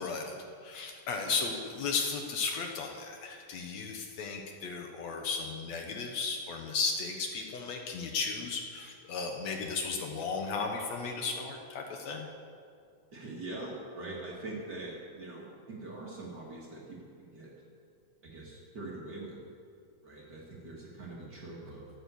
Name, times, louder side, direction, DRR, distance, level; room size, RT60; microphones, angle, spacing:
voice 1, 0.0-12.3, left 4 dB, 70° left, 3 dB, 2.1 m, -35 dB
voice 2, 1.2-1.8 13.1-17.5 18.2-19.4 20.0-21.9, right 2 dB, 40° right, -3 dB, 2.1 m, -43 dB
13.5 x 9.3 x 7.0 m, 2.3 s
omnidirectional pair, 3.5 m